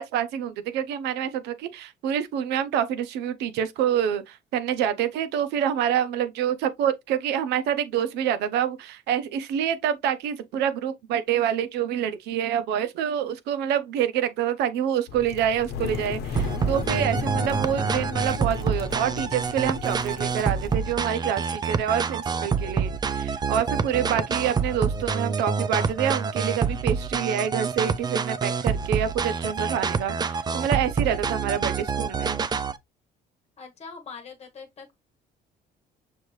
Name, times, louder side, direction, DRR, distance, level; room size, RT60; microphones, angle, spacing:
voice 1, 0.0-32.4, right 9 dB, 85° right, 0.7 m, -27 dB
sound 1, 15.1-20.7, left 6 dB, 75° left, 0.9 m, -35 dB
sound 2, 16.4-32.8, right 5 dB, 25° right, 0.4 m, -27 dB
voice 2, 33.6-34.9, left 5 dB, 40° left, 1.2 m, -42 dB
6.4 x 2.7 x 3.1 m
cardioid pair, 110°, 17 cm